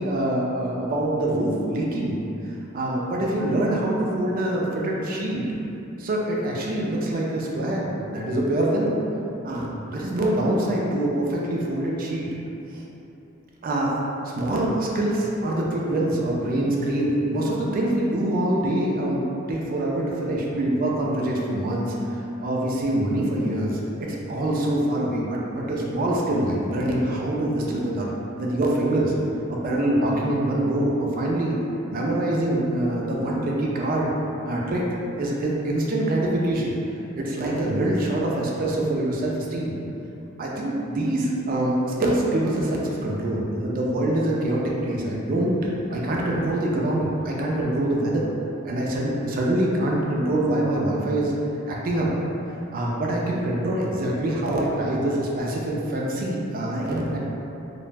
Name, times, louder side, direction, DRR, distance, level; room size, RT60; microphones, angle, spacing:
voice 1, 0.0-2.2 2.7-5.4 6.0-8.9 9.4-12.3 12.7-12.8 13.6-14.0 14.3-21.9 22.4-28.1 28.4-29.2 29.5-31.6 31.9-34.1 34.4-36.8 37.2-39.8 40.4-48.3 48.6-51.3 51.7-52.1 52.7-57.2, right 1 dB, 45° right, -3 dB, 0.4 m, -25 dB
2.3 x 2.0 x 3.2 m, 2.8 s
head